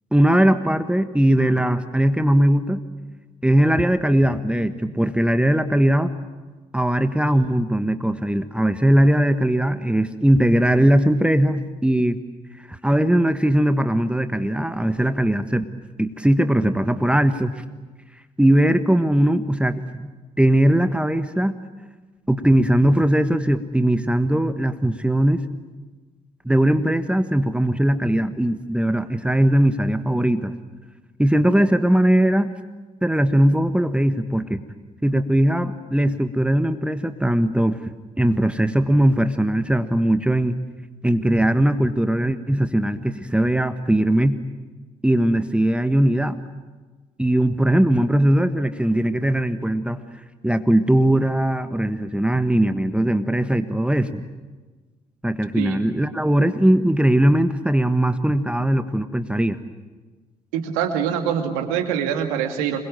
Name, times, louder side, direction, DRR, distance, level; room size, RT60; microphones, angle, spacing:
voice 1, 0.1-2.8 3.4-6.1 6.7-12.2 12.6-15.6 16.0-17.6 18.4-20.1 20.4-21.5 22.3-25.4 26.4-30.5 31.2-32.5 33.0-34.6 35.0-37.9 38.2-40.6 41.0-44.4 45.0-46.4 47.2-50.0 50.4-54.2 55.2-59.6, right 1 dB, 5° right, 10 dB, 1.5 m, -19 dB
voice 2, 60.5-62.8, right 8 dB, 70° right, 6 dB, 2.4 m, -24 dB
27.0 x 21.5 x 9.0 m, 1.3 s
figure-of-eight pair, 40°, 19 cm